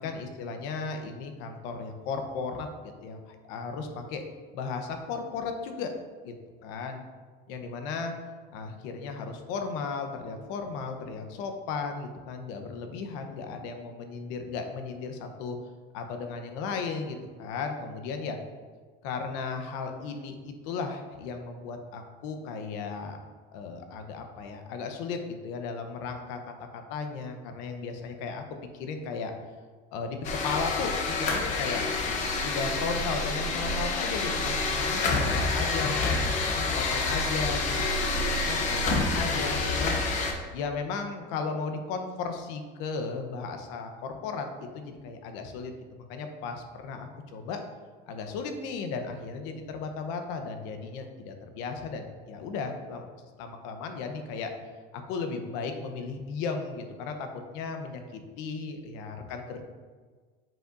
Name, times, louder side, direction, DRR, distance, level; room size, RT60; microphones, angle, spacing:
voice 1, 0.0-4.2 4.5-5.9 6.2-6.3 6.6-7.0 7.5-8.1 8.5-15.6 15.9-18.4 19.0-23.2 23.5-28.4 28.8-29.3 29.9-31.8 32.4-40.0 40.5-47.6 48.1-53.0 53.4-54.5 54.9-59.6, left 4 dB, 90° left, 5 dB, 0.9 m, -35 dB
sound 1, 30.2-40.3, left 3 dB, 35° left, 0.8 m, -28 dB
7.3 x 5.4 x 2.6 m, 1.5 s
cardioid pair, 175°, 20 cm